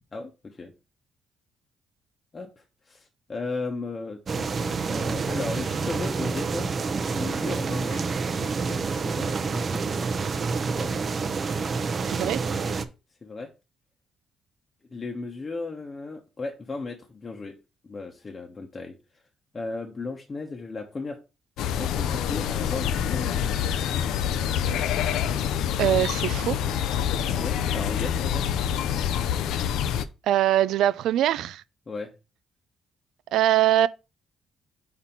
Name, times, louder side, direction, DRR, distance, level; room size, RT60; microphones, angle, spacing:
voice 1, 0.1-0.7 2.3-11.0 13.2-13.5 14.9-17.6 17.8-19.0 19.5-21.2 21.7-23.6 27.2-28.5 31.9-32.1, left 3 dB, 35° left, 0.9 m, -36 dB
sound 1, 4.3-12.9, right 4 dB, 45° right, 0.6 m, -28 dB
voice 2, 12.0-12.4 25.8-26.6 30.2-31.6 33.3-33.9, right 12 dB, 85° right, 0.3 m, -22 dB
sound 2, 21.6-30.0, left 9 dB, 85° left, 0.4 m, -26 dB
4.3 x 4.3 x 5.6 m
cardioid pair, 90°, 0 cm